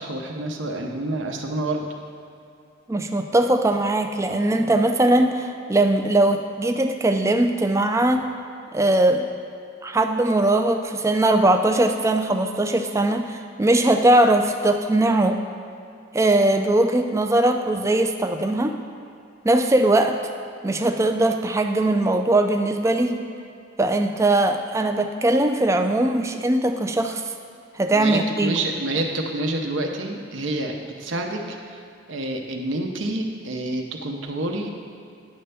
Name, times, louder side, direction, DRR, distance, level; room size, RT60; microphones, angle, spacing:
voice 1, 0.0-1.9 27.9-31.8 32.1-34.7, right 2 dB, 75° right, 2 dB, 0.8 m, -28 dB
voice 2, 2.9-8.2 8.7-9.3 9.8-15.4 16.1-18.8 19.4-20.2 20.6-23.2 23.8-27.2 27.7-28.6, right 1 dB, 15° right, 5 dB, 0.4 m, -20 dB
9.9 x 3.3 x 6.8 m, 2.5 s
head